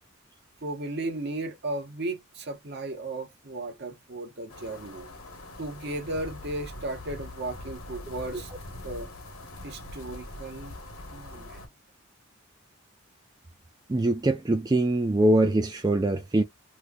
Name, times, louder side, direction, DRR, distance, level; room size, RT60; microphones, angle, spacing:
voice 1, 0.6-5.1 5.6-8.5 8.8-9.1 9.6-10.8 11.1-11.6, right 2 dB, 55° right, 0.9 m, -35 dB
sound 1, 4.5-11.7, left 1 dB, 85° left, 1.1 m, -43 dB
voice 2, 13.9-16.4, right 1 dB, 20° right, 0.3 m, -23 dB
3.0 x 2.1 x 3.6 m
head